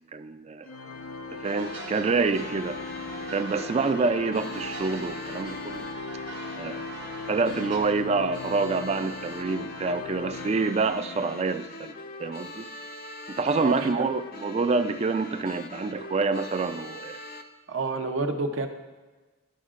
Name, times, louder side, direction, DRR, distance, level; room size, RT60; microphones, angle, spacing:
voice 1, 0.1-0.7 1.4-2.8 3.3-5.8 6.6-6.8 7.3-11.9 12.2-12.7 13.3-17.2, right 4 dB, 30° right, 11 dB, 0.3 m, -27 dB
Organ, 0.6-11.3, left 3 dB, 90° left, 0.7 m, -39 dB
sound 1, 1.4-17.4, left 3 dB, 45° left, 0.5 m, -41 dB
sound 2, 1.6-7.8, right 3 dB, 60° right, 1.3 m, -43 dB
voice 2, 13.6-14.0 17.7-18.7, right 3 dB, 75° right, 4 dB, 0.7 m, -29 dB
11.5 x 6.3 x 2.5 m, 1.3 s
head